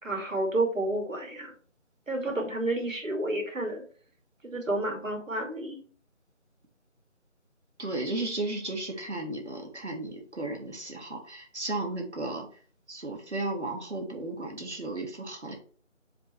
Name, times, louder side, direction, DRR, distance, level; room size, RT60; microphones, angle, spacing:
voice 1, 0.0-1.5 2.1-3.8 4.4-5.8, right 2 dB, 85° right, 2 dB, 2.7 m, -30 dB
voice 2, 7.8-12.5 12.9-15.6, right 2 dB, 60° right, 2 dB, 1.9 m, -34 dB
5.5 x 4.6 x 4.5 m, 0.43 s
figure-of-eight pair, 175°, 39 cm